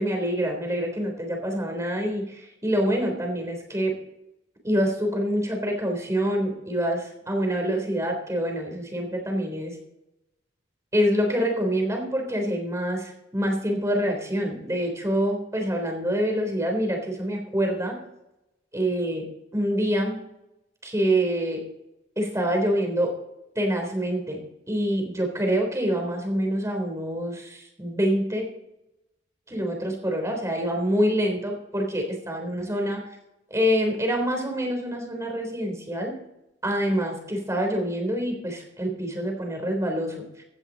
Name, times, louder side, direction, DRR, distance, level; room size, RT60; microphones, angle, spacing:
voice 1, 0.0-4.0 4.6-9.8 10.9-18.0 18.7-19.2 19.5-20.2 20.8-21.6 22.2-23.1 23.6-24.4 24.7-28.5 29.5-33.0 33.5-36.2 36.6-40.4, equal, 15° right, 3 dB, 3.5 m, -26 dB
16.5 x 10.5 x 4.0 m, 0.87 s
head